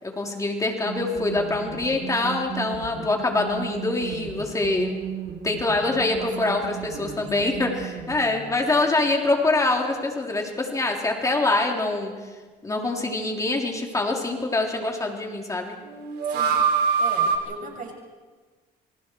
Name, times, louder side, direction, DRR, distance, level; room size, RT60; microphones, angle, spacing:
voice 1, 0.0-5.0 5.4-6.6 7.0-12.1 12.6-15.7, left 2 dB, 20° left, 1 dB, 3.4 m, -24 dB
sound 1, 0.8-8.6 8.9-9.0 15.8-17.4, right 6 dB, 80° right, 3.6 m, -29 dB
voice 2, 6.2-6.6 7.4-7.7 8.6-9.3 16.3-16.6 17.0-17.9, right 4 dB, 50° right, 1 dB, 6.4 m, -39 dB
28.0 x 25.0 x 4.6 m, 1.4 s
cardioid pair, 110°, 17 cm